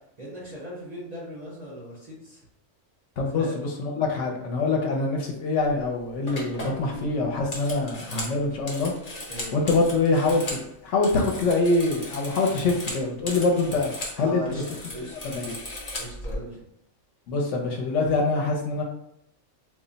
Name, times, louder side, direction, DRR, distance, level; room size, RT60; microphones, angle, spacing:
voice 1, 0.2-2.4 3.3-3.6 6.8-7.1 9.3-9.6 14.2-14.6 14.9-15.4 16.0-16.6, equal, 40° right, -6 dB, 0.6 m, -38 dB
voice 2, 3.2-8.9 9.5-14.6 15.1-15.4 17.3-18.8, left 3 dB, 70° left, 1 dB, 0.9 m, -25 dB
sound 1, 5.6-5.9 6.3-10.7 10.9-14.2 14.5-16.4, left 1 dB, 45° left, 0.6 m, -37 dB
2.3 x 2.0 x 3.8 m, 0.78 s
omnidirectional pair, 1.4 m